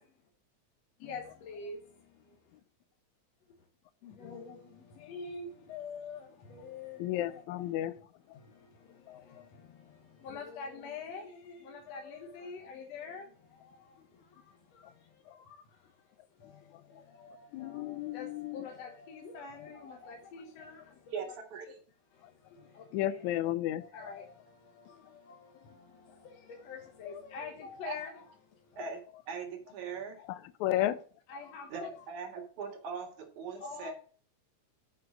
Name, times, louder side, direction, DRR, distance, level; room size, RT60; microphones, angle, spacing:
voice 1, 1.0-1.8 4.0-7.6 8.3-15.6 16.4-21.2 22.1-23.2 23.8-28.2 28.6-28.8 30.7-30.9 31.3-32.0 33.5-33.9, left 5 dB, 65° left, 2.2 m, -46 dB
voice 2, 7.0-7.9 8.3-8.4 9.1-9.5 15.3-15.4 16.7-16.8 17.5-18.7 22.9-23.8 30.2-31.0, left 13 dB, 80° left, 2.0 m, -33 dB
voice 3, 21.1-21.8 27.9-28.0 28.8-29.0 29.3-30.2 31.7-33.9, right 5 dB, 75° right, 3.3 m, -40 dB
7.9 x 6.0 x 6.1 m
omnidirectional pair, 3.4 m